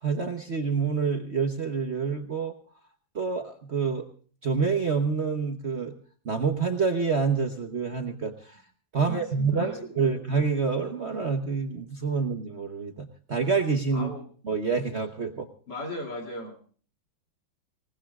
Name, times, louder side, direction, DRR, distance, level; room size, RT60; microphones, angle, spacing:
voice 1, 0.0-2.5 3.1-4.1 4.4-5.9 6.2-8.6 8.9-14.1 14.5-15.5, right 5 dB, 40° right, 5 dB, 1.1 m, -27 dB
voice 2, 9.0-10.2 13.9-14.3 15.7-16.6, left 1 dB, 60° left, 2 dB, 3.5 m, -38 dB
26.5 x 18.5 x 2.4 m, 0.42 s
omnidirectional pair, 2.1 m